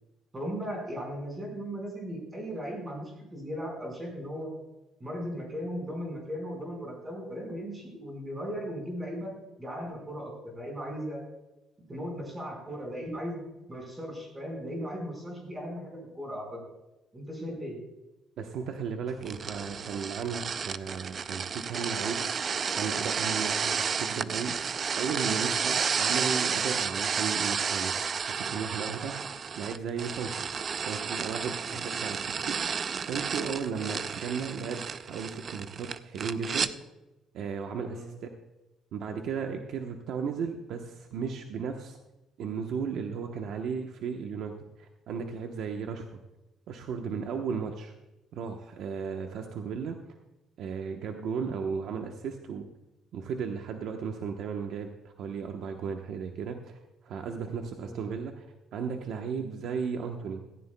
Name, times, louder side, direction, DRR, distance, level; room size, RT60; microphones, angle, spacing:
voice 1, 0.3-4.5 5.0-9.3 9.6-11.2 11.9-13.4 13.7-16.6 17.1-17.8 31.6-31.9 37.9-38.1 57.7-57.9, equal, 15° right, 0 dB, 4.7 m, -37 dB
voice 2, 18.4-22.2 22.7-24.5 24.9-29.1 29.5-30.5 30.8-32.8 33.1-36.7 37.3-38.3 38.9-42.0 42.4-46.2 46.7-47.9 48.3-50.0 50.6-52.7 53.1-58.5 58.7-60.4, right 6 dB, 60° right, 4 dB, 0.9 m, -35 dB
sound 1, 19.2-36.7, right 6 dB, 30° right, 0.4 m, -31 dB
17.0 x 15.5 x 2.2 m, 0.99 s
cardioid pair, 165°, 0 cm